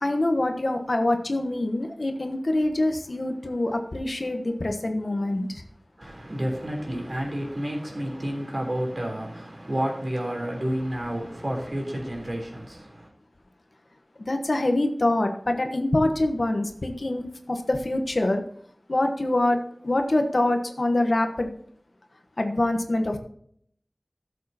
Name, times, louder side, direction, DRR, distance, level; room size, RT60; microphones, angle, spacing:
voice 1, 0.0-5.6 14.2-18.4 18.9-19.6 19.8-21.5 22.4-23.2, left 1 dB, 80° left, 1.2 m, -25 dB
voice 2, 6.0-13.1, equal, 55° right, 3.5 m, -30 dB
14.5 x 7.5 x 2.8 m
wide cardioid pair, 45°, 0 cm